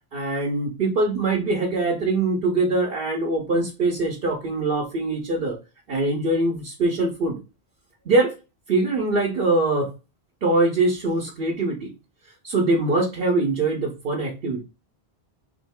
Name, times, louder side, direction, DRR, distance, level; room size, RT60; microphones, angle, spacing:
voice 1, 0.1-5.6 5.9-7.4 8.0-8.3 8.7-9.9 10.4-11.9 12.4-14.6, right 2 dB, 65° right, -1 dB, 1.1 m, -23 dB
3.6 x 3.1 x 3.5 m, 0.29 s
omnidirectional pair, 1.1 m